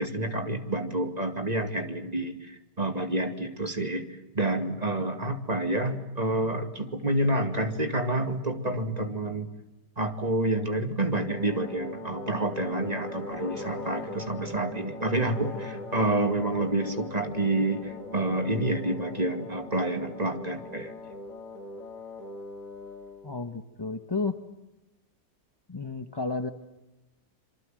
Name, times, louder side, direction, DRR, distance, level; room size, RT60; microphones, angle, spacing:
voice 1, 0.0-4.1 4.3-9.5 10.0-20.9, right 1 dB, 20° right, 6 dB, 2.3 m, -28 dB
sound 1, 11.1-23.3, left 2 dB, 50° left, 2.8 m, -40 dB
voice 2, 23.2-24.3 25.7-26.5, left 3 dB, 15° left, 7 dB, 1.1 m, -32 dB
27.5 x 24.5 x 7.8 m, 1.0 s
omnidirectional pair, 1.9 m